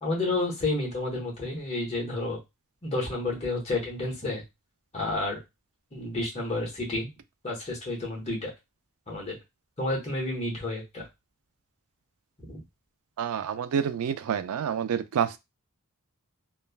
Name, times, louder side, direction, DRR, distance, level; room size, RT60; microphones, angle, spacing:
voice 1, 0.0-2.4 2.8-4.4 4.9-5.4 5.9-7.1 7.4-8.5 9.1-9.4 9.8-11.1 12.4-12.6, left 2 dB, 30° left, 1.1 m, -30 dB
voice 2, 13.2-15.4, right 8 dB, 70° right, 0.3 m, -28 dB
3.2 x 2.1 x 2.3 m
head